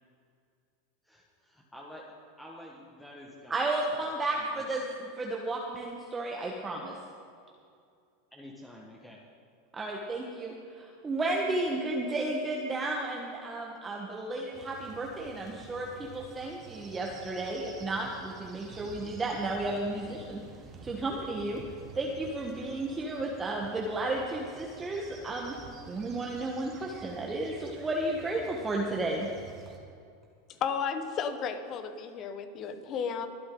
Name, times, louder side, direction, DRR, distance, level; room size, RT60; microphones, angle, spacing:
voice 1, 1.0-2.1 2.4-3.7 4.0-4.1 4.4-4.6 8.3-9.2, left 1 dB, 5° left, -2 dB, 1.7 m, -49 dB
voice 2, 3.5-7.0 9.7-20.4 20.8-21.6 21.9-25.6 25.9-29.3, right 2 dB, 20° right, -1 dB, 1.4 m, -33 dB
sound 1, 14.5-29.8, right 4 dB, 35° right, 2.1 m, -50 dB
voice 3, 30.6-33.3, left 6 dB, 45° left, 9 dB, 1.4 m, -33 dB
23.0 x 8.5 x 4.0 m, 2.4 s
hypercardioid pair, 95°, 0 cm